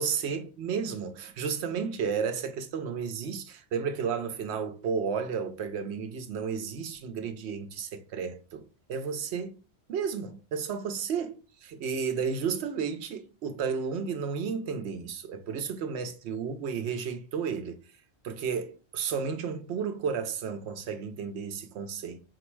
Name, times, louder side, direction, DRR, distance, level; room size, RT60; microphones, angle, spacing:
voice 1, 0.0-9.6 9.9-17.8 18.2-22.2, right 6 dB, 75° right, 0.9 m, -32 dB
4.5 x 2.1 x 4.4 m
omnidirectional pair, 1.2 m